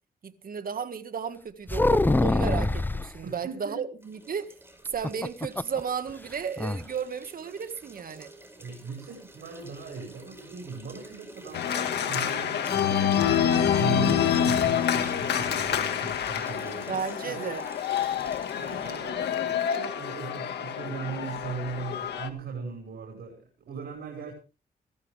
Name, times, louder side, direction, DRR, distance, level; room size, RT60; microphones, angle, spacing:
voice 1, 0.2-4.5 4.9-8.3 16.9-17.6, right 6 dB, 60° right, 1.8 m, -34 dB
sound 1, 1.7-3.1 4.9-5.8 6.1-6.2 6.6-6.8, left 2 dB, 10° left, 0.6 m, -24 dB
voice 2, 3.2-3.8 8.6-16.9 17.2-17.5 18.5-24.3, right 5 dB, 80° right, 5.5 m, -38 dB
sound 2, 4.0-19.1, right 1 dB, 15° right, 5.3 m, -49 dB
Organ, 11.5-22.3, left 9 dB, 85° left, 1.8 m, -27 dB
17.5 x 14.0 x 3.4 m
cardioid pair, 70°, 17 cm